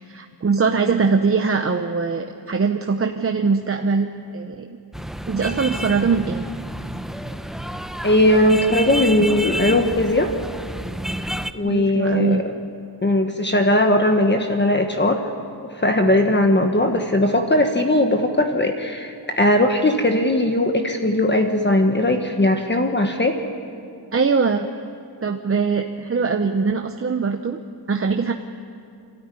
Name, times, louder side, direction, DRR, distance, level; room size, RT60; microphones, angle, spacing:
voice 1, 0.1-4.8 5.3-6.4 11.6-12.4 24.1-24.7 25.2-27.6 27.9-28.3, right 5 dB, 35° right, 4 dB, 0.9 m, -22 dB
sound 1, 4.9-11.5, equal, ahead, 0.7 m, -30 dB
voice 2, 8.0-10.3 11.5-12.5 13.0-15.2 15.8-23.4, left 1 dB, 25° left, 4 dB, 1.4 m, -19 dB
28.5 x 13.5 x 9.7 m, 2.5 s
wide cardioid pair, 140°, 41 cm